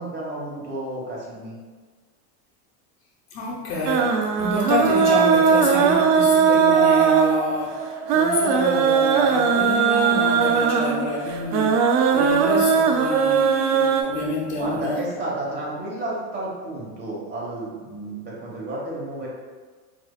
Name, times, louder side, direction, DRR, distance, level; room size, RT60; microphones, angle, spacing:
voice 1, 0.0-1.6 14.6-19.3, right 1 dB, 20° right, -5 dB, 1.2 m, -31 dB
voice 2, 3.3-4.1 4.4-7.8 8.1-11.7 12.1-15.0, left 2 dB, 75° left, -4 dB, 1.0 m, -28 dB
sound 1, 3.9-14.0, right 6 dB, 70° right, 0.6 m, -19 dB
sound 2, 5.7-12.3, equal, ahead, 0.4 m, -34 dB
4.8 x 2.7 x 2.3 m, 1.4 s
supercardioid pair, 125°, 47 cm